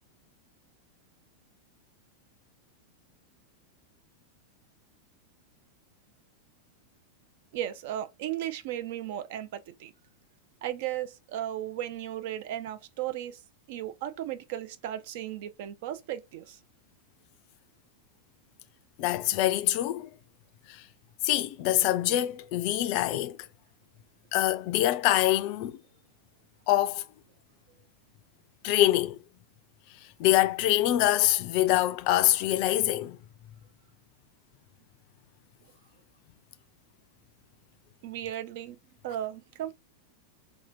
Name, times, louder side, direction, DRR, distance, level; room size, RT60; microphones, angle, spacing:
voice 1, 7.5-9.9 10.6-13.4 13.7-16.6 38.0-38.8 39.0-39.7, right 12 dB, 50° right, 0.4 m, -35 dB
voice 2, 19.0-20.1 20.7-20.9 21.2-23.4 24.3-25.8 26.7-27.0 28.6-29.2 30.2-33.2, left 14 dB, 45° left, 0.4 m, -25 dB
2.7 x 2.3 x 2.6 m
figure-of-eight pair, 90°, 0 cm